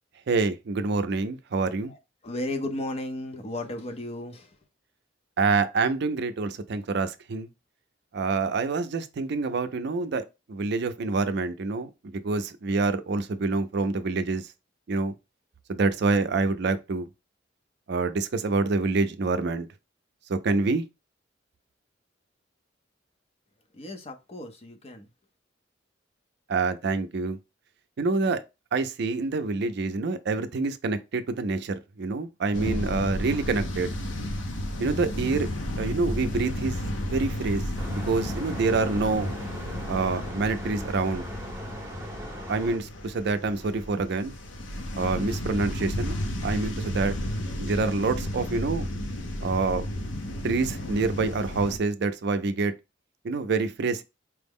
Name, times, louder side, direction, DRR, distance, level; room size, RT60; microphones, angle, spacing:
voice 1, 0.3-1.9 5.4-7.5 8.1-14.5 14.9-15.1 15.7-17.1 17.9-19.7 20.3-20.8 26.5-27.4 28.0-28.4 28.7-33.9 34.8-35.5 35.8-36.8 37.0-37.6 37.9-39.3 39.9-41.2 42.5-44.3 45.0-46.2 46.4-47.2 47.6-48.9 49.4-49.9 50.4-52.7 53.2-54.0, right 3 dB, 60° right, 0.4 m, -27 dB
voice 2, 2.2-4.6 23.7-25.1, left 1 dB, 35° left, 0.6 m, -34 dB
sound 1, 32.5-51.8, left 1 dB, 80° left, 0.7 m, -33 dB
sound 2, 37.8-42.8, equal, 15° right, 0.8 m, -39 dB
4.5 x 2.0 x 3.5 m
head